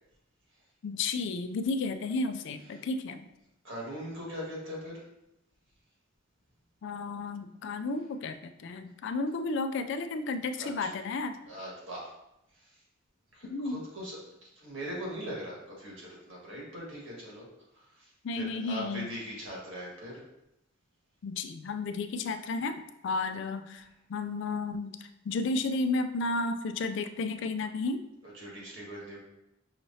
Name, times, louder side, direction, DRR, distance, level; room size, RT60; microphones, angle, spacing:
voice 1, 0.8-3.3 6.8-11.3 13.5-13.8 18.2-19.1 21.2-24.9 25.3-28.0, left 3 dB, 65° left, 9 dB, 0.3 m, -32 dB
voice 2, 3.6-5.0 10.6-10.9 11.5-12.1 12.5-12.8 13.3-17.5 17.7-20.2 28.2-29.2, equal, 70° right, -4 dB, 1.7 m, -41 dB
5.7 x 3.1 x 2.7 m, 0.86 s
head